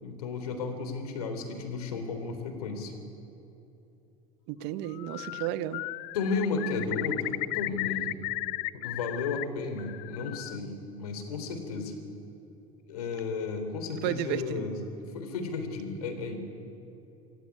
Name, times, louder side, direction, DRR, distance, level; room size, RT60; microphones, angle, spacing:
voice 1, 0.0-2.9 5.2-5.4 6.1-8.1 8.7-12.0 12.9-16.4, left 4 dB, 80° left, 7 dB, 3.6 m, -33 dB
voice 2, 4.5-5.8 14.0-14.7, right 12 dB, 60° right, 14 dB, 1.2 m, -33 dB
Bird, 4.9-5.5 5.7-9.4 9.8-10.6, left 20 dB, 60° left, 0.6 m, -35 dB
27.0 x 15.0 x 9.5 m, 2.9 s
hypercardioid pair, 75°, 19 cm